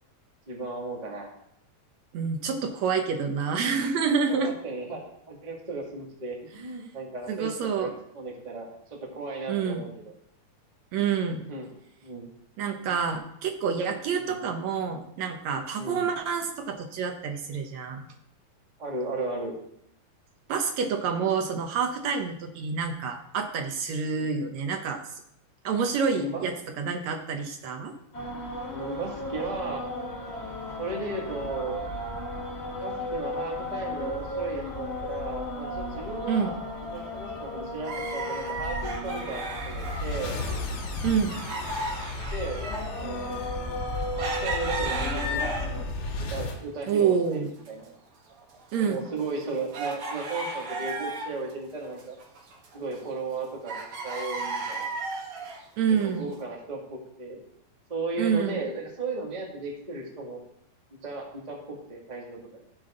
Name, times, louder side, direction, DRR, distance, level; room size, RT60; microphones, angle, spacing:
voice 1, 0.5-1.3 4.3-10.1 11.4-11.8 12.0-12.3 14.2-14.4 15.7-16.0 18.8-19.5 24.1-24.3 26.1-26.5 28.7-29.8 30.8-31.9 32.8-40.4 42.3-42.6 43.0-43.3 44.2-45.7 46.2-48.0 48.8-52.2 52.7-54.9 55.9-57.4 57.9-60.4 60.9-62.4, right 3 dB, 15° right, -3 dB, 1.6 m, -35 dB
voice 2, 2.1-4.5 7.3-7.9 9.5-9.8 10.9-11.4 12.6-18.0 20.5-25.0 25.6-27.9 36.3-36.5 41.0-41.4 46.9-47.5 48.7-49.0 55.8-56.3 58.2-58.6, right 6 dB, 70° right, 4 dB, 1.7 m, -28 dB
sound 1, 28.1-45.8, left 1 dB, 45° left, 0.8 m, -35 dB
sound 2, 37.8-40.6 40.9-46.0 46.5-47.3 47.6-47.7 48.3-51.5 51.8-53.4 53.7-55.6 56.3-56.4, right 2 dB, 50° right, 1.9 m, -35 dB
sound 3, 39.2-46.6, left 3 dB, 80° left, 3.9 m, -36 dB
15.5 x 7.9 x 3.8 m, 0.74 s
omnidirectional pair, 4.4 m